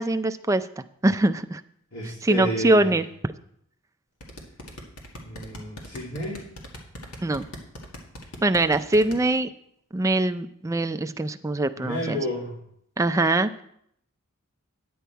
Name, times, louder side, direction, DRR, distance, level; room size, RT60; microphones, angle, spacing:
voice 1, 0.0-1.6 2.2-3.0 7.2-7.5 8.4-9.5 9.9-12.2 13.0-13.6, right 2 dB, 15° right, 9 dB, 0.3 m, -23 dB
voice 2, 1.9-3.0 5.2-6.4 11.8-12.6, equal, 60° left, -5 dB, 2.5 m, -31 dB
sound 1, 4.2-9.2, left 1 dB, 85° left, 1.9 m, -39 dB
10.0 x 8.4 x 4.5 m, 0.70 s
head